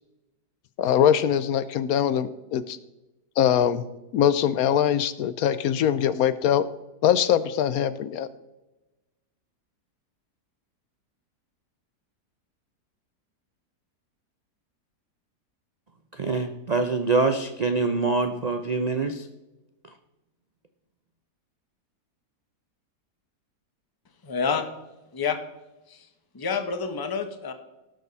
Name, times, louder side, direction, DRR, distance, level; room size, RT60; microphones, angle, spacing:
voice 1, 0.8-2.8 3.4-3.8 4.1-6.6 7.0-8.3, left 9 dB, 70° left, 14 dB, 1.0 m, -22 dB
voice 2, 16.2-19.2, right 3 dB, 80° right, 6 dB, 0.3 m, -24 dB
voice 3, 24.2-24.7 25.1-25.4 25.9-26.0 26.3-27.5, left 5 dB, 20° left, 7 dB, 0.7 m, -28 dB
17.5 x 6.7 x 4.1 m, 1.0 s
omnidirectional pair, 1.8 m